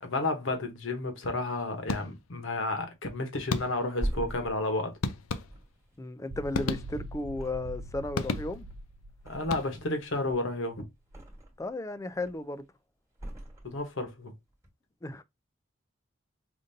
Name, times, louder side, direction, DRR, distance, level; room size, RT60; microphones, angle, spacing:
voice 1, 0.0-4.9 9.2-10.8 13.6-14.3, left 2 dB, 65° left, 1.0 m, -31 dB
sound 1, 1.9-2.4 3.5-4.1 5.0-5.9 6.5-7.3 8.1-8.9 9.4-10.1, left 4 dB, 85° left, 0.5 m, -34 dB
Thump thud, 3.6-6.9 7.3-8.1 8.4-9.8 10.2-11.7 12.1-12.6 13.1-14.1 14.5-14.7, right 1 dB, 15° right, 1.3 m, -41 dB
voice 2, 6.0-8.7 11.6-12.6 15.0-15.2, left 2 dB, 15° left, 0.3 m, -34 dB
sound 2, 6.3-10.5, right 1 dB, 90° right, 0.4 m, -43 dB
5.1 x 2.6 x 2.6 m
head